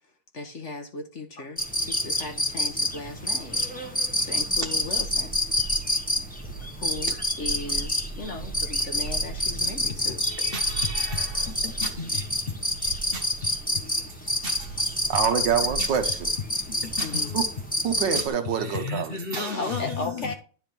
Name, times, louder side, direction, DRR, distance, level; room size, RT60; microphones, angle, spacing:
voice 1, 0.3-3.6 4.2-5.4 6.7-10.2 17.0-17.4 19.6-20.3, left 3 dB, 45° left, 1.1 m, -36 dB
sound 1, 1.6-18.3, left 1 dB, 5° left, 0.9 m, -28 dB
voice 2, 10.2-13.3 14.4-14.9 15.3-15.4 15.8-15.9 16.7-17.2 18.1-18.2 18.6-19.9, left 2 dB, 65° left, 0.5 m, -34 dB
voice 3, 15.1-16.3 17.3-17.4 17.8-19.2, right 7 dB, 70° right, 1.7 m, -26 dB
10.5 x 3.5 x 5.9 m
omnidirectional pair, 2.1 m